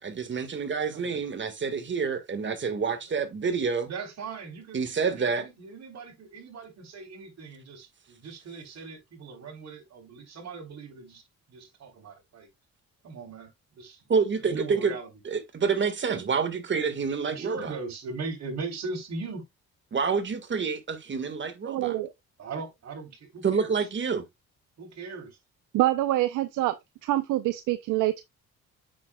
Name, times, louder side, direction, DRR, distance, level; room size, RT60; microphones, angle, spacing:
voice 1, 0.0-3.9 4.7-5.4 14.1-14.9 15.2-17.7 19.9-21.9 23.4-24.2, right 5 dB, 40° right, 1.7 m, -28 dB
voice 2, 0.5-1.2 3.8-11.2 11.5-12.5 13.0-14.1 14.3-15.2 17.2-19.4 22.4-23.9 24.8-25.4, right 4 dB, 60° right, 3.7 m, -39 dB
voice 3, 21.6-22.1 25.7-26.7 27.0-28.2, right 15 dB, 90° right, 0.7 m, -25 dB
8.5 x 6.8 x 2.3 m
cardioid pair, 90°, 30 cm